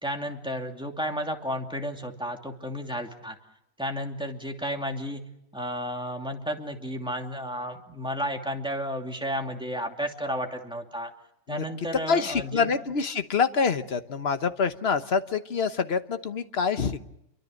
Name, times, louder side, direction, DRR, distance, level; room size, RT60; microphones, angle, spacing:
voice 1, 0.0-3.4 3.8-5.2 5.5-11.1 11.5-12.7, equal, 5° right, 2 dB, 2.6 m, -32 dB
voice 2, 12.1-17.0, left 5 dB, 50° left, 10 dB, 1.3 m, -26 dB
28.5 x 24.0 x 6.6 m, 0.82 s
omnidirectional pair, 1.5 m